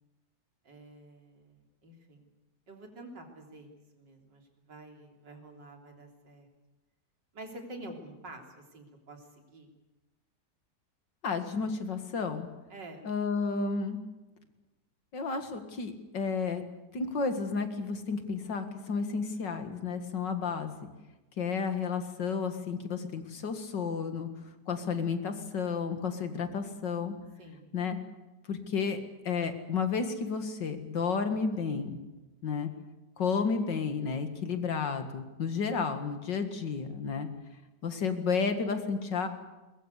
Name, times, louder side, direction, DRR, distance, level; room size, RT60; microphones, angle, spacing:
voice 1, 0.6-2.2 2.7-6.5 7.3-9.7 12.7-13.0 27.4-27.7, right 1 dB, 75° right, 2 dB, 4.0 m, -48 dB
voice 2, 11.2-12.5 13.0-14.0 15.1-16.6 16.9-20.7 21.4-24.3 24.7-27.1 27.7-28.0 28.5-29.0 29.2-32.0 32.4-32.7 33.2-37.3 37.8-39.3, left 5 dB, 80° left, 8 dB, 2.6 m, -32 dB
21.5 x 21.5 x 8.3 m, 1.1 s
omnidirectional pair, 1.9 m